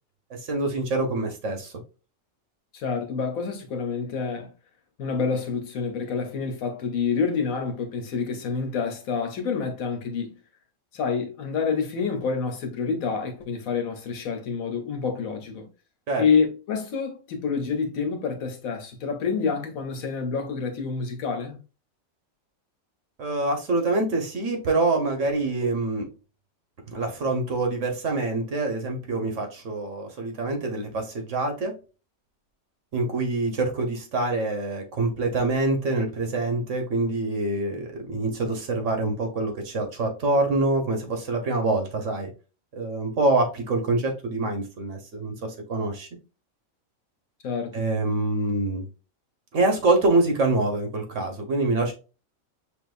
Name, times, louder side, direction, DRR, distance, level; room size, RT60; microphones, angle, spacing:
voice 1, 0.3-1.7 16.1-16.2 23.2-26.1 26.9-31.7 32.9-42.3 42.8-46.1 47.7-48.8 49.5-51.9, right 2 dB, 65° right, 1.4 m, -25 dB
voice 2, 2.7-4.5 5.0-10.3 10.9-15.7 16.2-21.6 47.4-47.9, left 5 dB, 85° left, 1.4 m, -27 dB
6.0 x 2.9 x 2.5 m
omnidirectional pair, 1.4 m